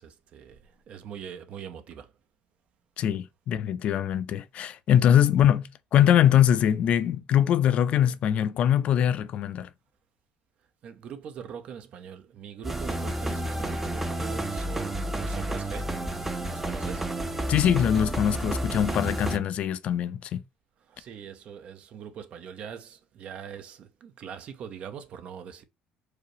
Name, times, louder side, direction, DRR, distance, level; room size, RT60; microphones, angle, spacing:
voice 1, 0.0-2.1 10.8-16.0 16.4-17.1 20.8-25.6, right 8 dB, 50° right, 0.6 m, -42 dB
voice 2, 3.0-9.7 17.5-20.4, left 10 dB, 50° left, 0.4 m, -23 dB
sound 1, 12.6-19.4, right 1 dB, 10° right, 0.5 m, -31 dB
4.7 x 2.0 x 3.0 m
cardioid pair, 115°, 3 cm